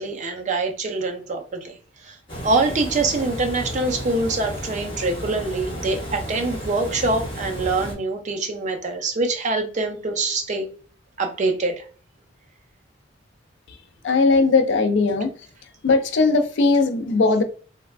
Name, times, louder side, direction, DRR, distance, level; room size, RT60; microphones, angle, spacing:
voice 1, 0.0-1.8 2.0-2.2 2.4-10.7 11.2-11.9, right 3 dB, 35° right, 0.5 m, -24 dB
Water, 2.3-7.9, equal, 25° left, 1.0 m, -33 dB
voice 2, 14.0-15.3 15.8-17.4, left 3 dB, 60° left, 0.4 m, -18 dB
3.2 x 2.1 x 2.3 m
head